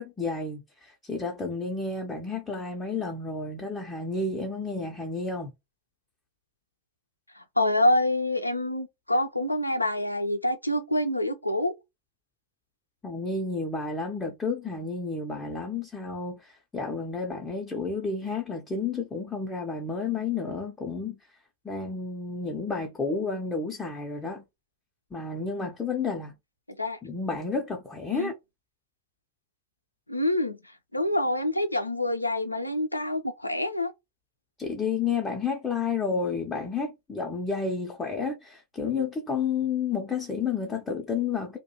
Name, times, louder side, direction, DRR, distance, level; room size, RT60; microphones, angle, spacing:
voice 1, 0.0-5.5 13.0-21.2 21.6-24.4 25.1-26.3 27.0-28.3 34.6-41.6, left 4 dB, 15° left, 0.5 m, -31 dB
voice 2, 7.4-11.7 26.8-27.0 28.1-28.3 30.1-30.6 30.9-33.9, left 1 dB, 85° left, 0.4 m, -26 dB
2.3 x 2.1 x 2.9 m
figure-of-eight pair, 90°, 0 cm